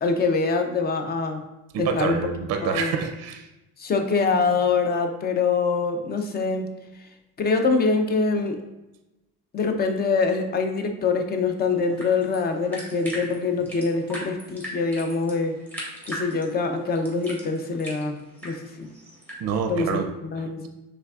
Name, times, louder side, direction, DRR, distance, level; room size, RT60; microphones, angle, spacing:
voice 1, 0.0-1.4 1.8-2.3 2.6-2.9 3.8-6.7 7.4-8.6 9.5-15.6 16.1-18.9 19.7-20.7, left 4 dB, 30° left, 6 dB, 0.5 m, -24 dB
voice 2, 1.7-3.5 19.4-20.1, right 6 dB, 55° right, 5 dB, 0.5 m, -27 dB
sound 1, 11.6-19.4, equal, 5° left, 1.3 m, -40 dB
5.8 x 3.4 x 2.3 m, 1.0 s
cardioid pair, 135°, 32 cm